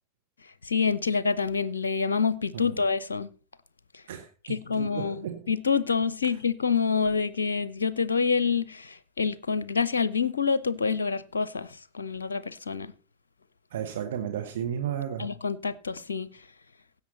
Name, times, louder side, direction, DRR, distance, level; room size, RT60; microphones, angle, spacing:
voice 1, 0.6-3.3 4.5-5.2 5.5-12.9 15.2-16.3, left 5 dB, 70° left, 0.6 m, -27 dB
voice 2, 4.1-5.5 6.3-6.4 13.7-15.3, right 9 dB, 60° right, 1.4 m, -34 dB
16.5 x 8.0 x 4.1 m
figure-of-eight pair, 90°, 0 cm